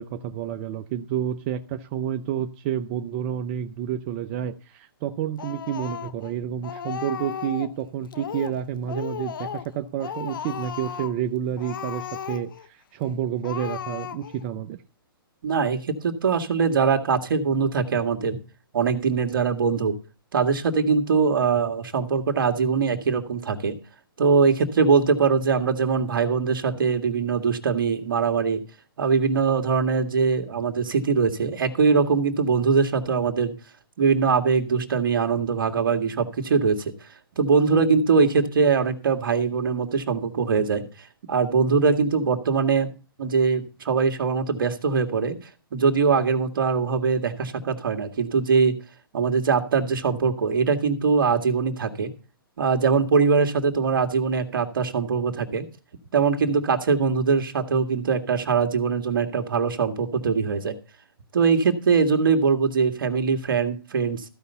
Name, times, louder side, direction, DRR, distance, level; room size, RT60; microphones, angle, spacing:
voice 1, 0.0-14.8, right 9 dB, 35° right, 0.7 m, -29 dB
Speech, 5.4-6.3 6.6-7.8 8.1-8.6 8.9-9.7 10.0-11.2 11.6-12.7 13.0-13.1 13.4-14.4, left 8 dB, 60° left, 1.0 m, -35 dB
voice 2, 15.4-18.4 18.7-20.0 20.3-23.8 24.2-28.6 29.0-33.5 34.0-36.9 37.4-40.9 41.3-42.9 43.2-45.4 45.7-48.8 49.1-52.1 52.6-55.6 56.1-60.7 61.3-64.2, right 5 dB, 65° right, 2.0 m, -22 dB
15.0 x 5.4 x 6.9 m
hypercardioid pair, 145°, 12 cm